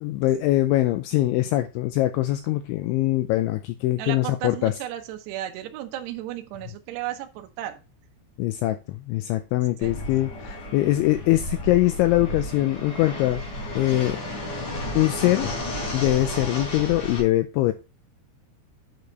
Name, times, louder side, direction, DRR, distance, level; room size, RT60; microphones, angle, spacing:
voice 1, 0.0-4.7 8.4-13.4 13.8-14.2 15.0-15.5 15.9-17.7, left 16 dB, 85° left, 2.7 m, -23 dB
voice 2, 4.0-7.8 9.8-10.0, right 12 dB, 75° right, 2.6 m, -34 dB
Fixed-wing aircraft airplane, 9.8-17.2, left 1 dB, 40° left, 4.7 m, -32 dB
8.7 x 6.7 x 4.0 m
omnidirectional pair, 6.0 m